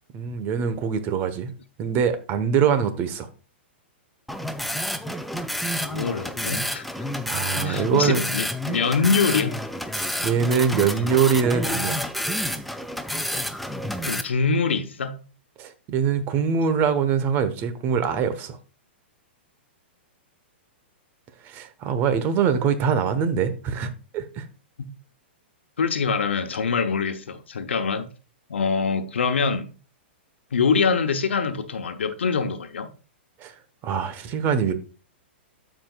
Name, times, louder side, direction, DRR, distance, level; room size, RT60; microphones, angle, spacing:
voice 1, 0.1-1.5 1.8-3.3 7.2-8.2 9.9-12.0 15.6-18.6 21.4-24.5 33.4-34.7, right 7 dB, 35° right, 1.1 m, -23 dB
sound 1, 4.3-14.2, equal, ahead, 0.5 m, -29 dB
voice 2, 5.8-6.8 7.6-9.6 14.0-15.2 25.8-28.1 28.5-29.7 30.5-32.9, left 5 dB, 85° left, 1.0 m, -24 dB
13.0 x 5.0 x 2.4 m
hypercardioid pair, 130°, 6 cm